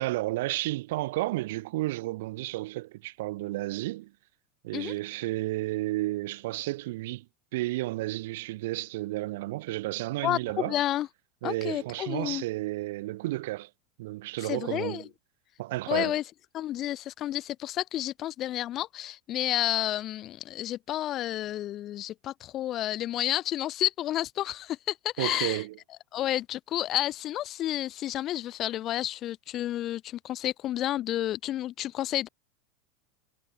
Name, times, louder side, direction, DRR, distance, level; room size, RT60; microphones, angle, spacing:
voice 1, 0.0-4.1 4.6-7.2 7.5-10.8 11.4-13.7 14.0-15.1 15.6-16.2 25.2-25.8, right 18 dB, 70° right, 5.8 m, -32 dB
voice 2, 10.2-11.1 11.4-12.4 14.4-15.0 15.9-16.2 16.5-25.6 26.1-32.3, left 13 dB, 45° left, 5.7 m, -30 dB
hypercardioid pair, 95°, 0 cm